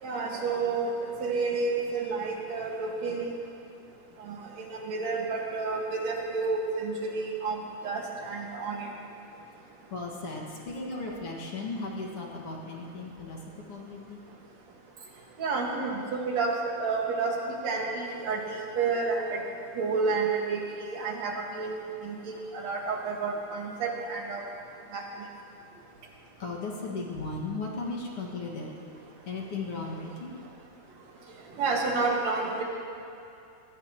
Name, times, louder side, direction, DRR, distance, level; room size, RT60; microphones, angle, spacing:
voice 1, 0.0-3.3 4.2-8.9 15.4-17.4 17.6-19.4 19.7-21.8 22.0-24.4 24.9-25.0 31.6-32.6, right 4 dB, 65° right, -1 dB, 2.9 m, -30 dB
voice 2, 9.9-13.4 13.7-14.2 26.4-28.7 29.3-30.4, left 3 dB, 50° left, -2 dB, 2.5 m, -36 dB
22.5 x 16.5 x 3.0 m, 2.6 s
omnidirectional pair, 3.5 m